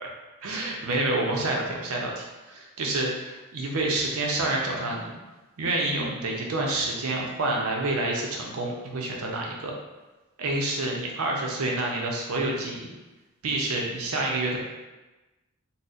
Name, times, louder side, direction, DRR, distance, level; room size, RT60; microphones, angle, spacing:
voice 1, 0.4-5.2 5.6-9.7 10.4-12.9 13.4-14.6, right 2 dB, 70° right, -1 dB, 0.6 m, -28 dB
4.0 x 2.0 x 2.5 m, 1.1 s
head